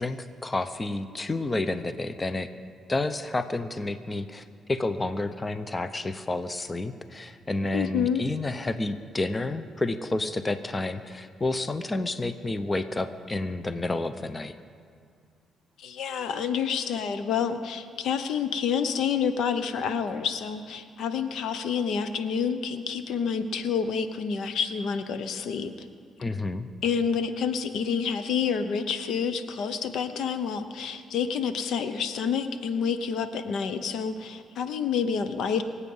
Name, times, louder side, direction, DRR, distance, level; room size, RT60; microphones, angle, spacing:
voice 1, 0.0-2.5 2.9-14.5 26.2-26.7, left 2 dB, 20° left, 11 dB, 0.7 m, -30 dB
voice 2, 7.7-8.2 15.8-25.7 26.8-35.6, left 6 dB, 75° left, 10 dB, 0.9 m, -28 dB
24.0 x 8.2 x 5.6 m, 2.3 s
cardioid pair, 90°, 0 cm